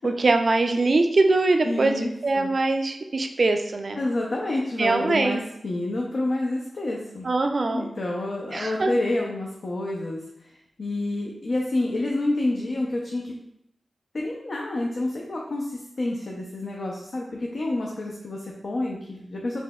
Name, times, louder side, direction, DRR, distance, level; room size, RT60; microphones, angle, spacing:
voice 1, 0.0-1.9 2.2-4.0 4.8-5.4 7.2-7.9 8.5-8.9, right 3 dB, 60° right, 5 dB, 0.3 m, -22 dB
voice 2, 1.6-2.5 4.0-7.3 7.7-10.5 10.8-13.3 14.1-19.6, left 2 dB, 65° left, -1 dB, 0.5 m, -28 dB
4.1 x 2.7 x 2.3 m, 0.78 s
wide cardioid pair, 65°, 0 cm